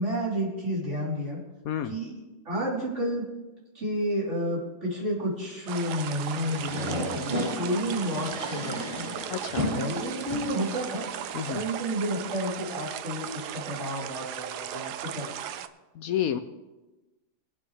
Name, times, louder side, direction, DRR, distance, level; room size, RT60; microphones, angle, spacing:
voice 1, 0.0-1.5 1.8-3.3 3.7-9.1 9.7-11.1 11.5-15.6, equal, 45° right, -6 dB, 3.9 m, -31 dB
sound 1, 5.7-11.8, left 1 dB, 25° right, 5.0 m, -35 dB
sound 2, 5.7-15.7, right 10 dB, 85° right, 1.2 m, -37 dB
voice 2, 9.3-9.7 11.3-11.6 15.9-16.4, left 10 dB, 70° left, 10 dB, 1.0 m, -30 dB
21.5 x 8.6 x 3.3 m, 1.1 s
omnidirectional pair, 1.7 m